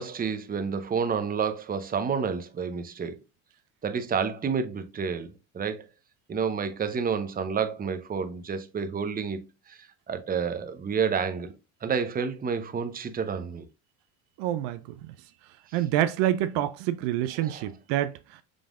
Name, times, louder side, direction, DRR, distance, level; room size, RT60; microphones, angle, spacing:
voice 1, 0.0-3.2 3.8-5.8 6.3-9.4 9.7-9.8 10.1-11.5 11.8-13.6 17.4-17.7, right 6 dB, 20° right, 0.7 m, -29 dB
voice 2, 14.4-15.1 15.7-18.4, right 12 dB, 70° right, 0.6 m, -27 dB
5.1 x 3.4 x 2.5 m
supercardioid pair, 90°, 42 cm